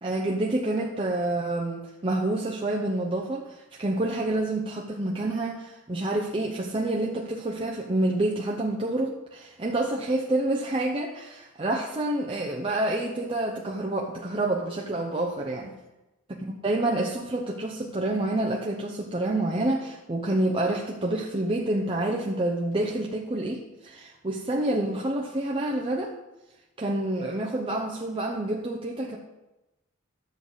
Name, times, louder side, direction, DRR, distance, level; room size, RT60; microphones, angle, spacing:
voice 1, 0.0-15.8 16.3-26.1 26.8-29.2, right 1 dB, 25° right, -1 dB, 0.8 m, -28 dB
12.5 x 7.7 x 4.0 m, 1.0 s
head